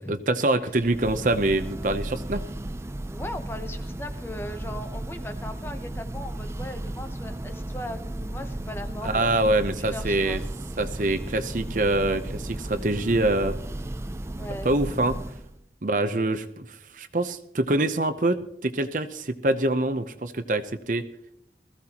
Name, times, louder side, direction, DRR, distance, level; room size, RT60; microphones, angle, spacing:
voice 1, 0.1-2.4 9.0-10.4 10.8-13.6 14.6-15.2 15.8-21.1, right 2 dB, 45° right, 10 dB, 0.7 m, -25 dB
Church bell, 0.7-15.6, right 1 dB, 15° right, 0.4 m, -34 dB
voice 2, 3.1-9.3 9.8-10.4 14.4-14.7, left 1 dB, 15° left, 7 dB, 0.8 m, -38 dB
20.5 x 15.0 x 2.9 m, 0.71 s
head